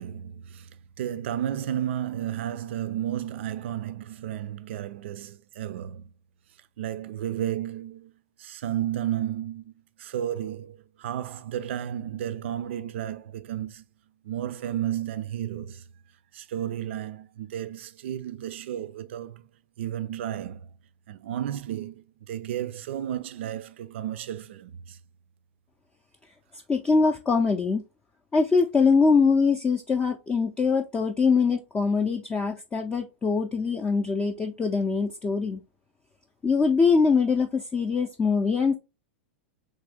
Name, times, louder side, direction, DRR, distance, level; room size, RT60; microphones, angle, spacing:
voice 1, 0.0-6.1 6.8-8.1 8.4-13.8 14.2-15.8 16.3-19.5 19.8-20.7 21.1-25.0, right 11 dB, 75° right, 0.4 m, -33 dB
voice 2, 26.7-27.8 28.3-35.6 36.4-38.8, left 4 dB, 15° left, 0.4 m, -23 dB
3.2 x 2.6 x 3.3 m
hypercardioid pair, 130°, 6 cm